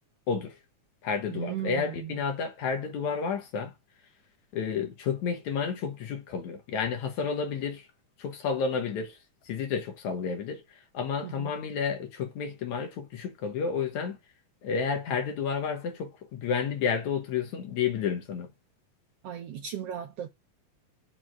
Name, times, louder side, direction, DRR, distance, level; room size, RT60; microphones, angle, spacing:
voice 1, 0.3-0.6 1.0-3.7 4.5-7.9 8.2-9.2 9.5-10.6 10.9-14.2 14.6-18.5, left 6 dB, 70° left, 2.6 m, -31 dB
voice 2, 1.3-2.2 11.2-11.5 19.2-20.3, right 10 dB, 70° right, 1.5 m, -36 dB
6.1 x 4.8 x 6.0 m
omnidirectional pair, 3.6 m